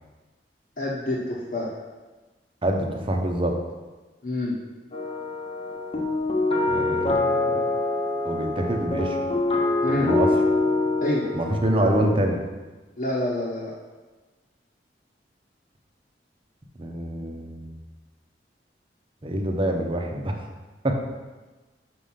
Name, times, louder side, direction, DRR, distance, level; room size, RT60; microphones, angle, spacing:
voice 1, 0.8-1.7 4.2-4.6 9.8-10.1 11.0-11.3 13.0-13.7, left 1 dB, 55° left, -7 dB, 1.2 m, -27 dB
voice 2, 2.6-3.6 6.7-7.6 8.2-9.2 9.9-10.3 11.3-12.4 16.8-17.8 19.2-20.4 20.8-20.9, right 1 dB, 30° right, 2 dB, 0.9 m, -26 dB
sound 1, 4.9-12.1, left 2 dB, 35° left, 1.0 m, -25 dB
6.3 x 5.1 x 5.7 m, 1.2 s
head